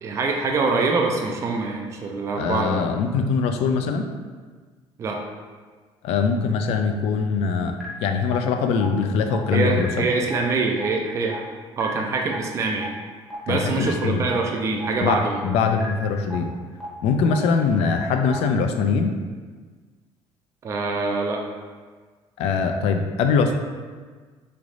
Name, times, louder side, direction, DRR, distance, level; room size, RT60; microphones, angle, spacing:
voice 1, 0.0-2.8 5.0-5.2 9.5-11.4 11.8-12.9 13.5-15.4 20.6-21.5, right 3 dB, 30° right, 1 dB, 0.3 m, -24 dB
voice 2, 2.4-4.1 6.0-7.7 8.0-10.0 13.5-14.2 15.0-16.5 17.0-19.1 22.4-23.6, left 5 dB, 75° left, 5 dB, 0.4 m, -22 dB
sound 1, 7.8-7.9 8.3-8.4 8.8-8.9 9.3-9.4 9.8-9.9 10.3-10.4 10.8-10.9 11.3-11.4 11.8-11.9 12.3-12.4 12.8-12.9 13.3-13.4 13.8-13.9 14.3-14.4 14.8-14.9 15.3-15.4 15.8-15.9 16.3-16.4 16.8-16.9 17.3-17.4 17.8-17.9 18.3-18.4, left 1 dB, 5° left, 0.7 m, -36 dB
3.3 x 2.4 x 3.9 m, 1.5 s
cardioid pair, 145°, 10 cm